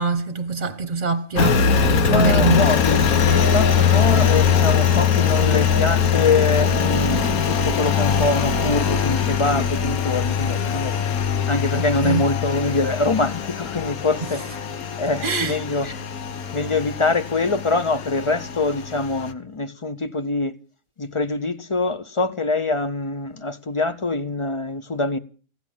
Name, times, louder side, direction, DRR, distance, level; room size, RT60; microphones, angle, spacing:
voice 1, 0.0-2.7 11.7-12.3 14.2-14.3 15.2-15.6, right 4 dB, 35° right, 1.0 m, -24 dB
Engine, 1.4-19.3, left 7 dB, 75° left, 1.5 m, -21 dB
voice 2, 2.0-11.0 11.5-14.4 15.0-15.9 16.5-20.5 21.0-25.2, left 3 dB, 30° left, 0.5 m, -24 dB
16.0 x 11.0 x 7.3 m
omnidirectional pair, 1.5 m